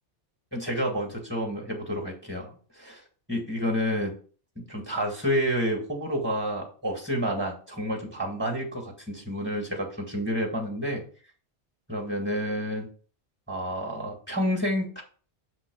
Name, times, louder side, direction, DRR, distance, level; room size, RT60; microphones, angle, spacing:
voice 1, 0.5-3.0 3.3-4.1 4.6-11.0 11.9-12.9 13.5-15.0, equal, 10° right, 1 dB, 2.0 m, -29 dB
7.8 x 3.0 x 6.2 m, 0.40 s
omnidirectional pair, 1.2 m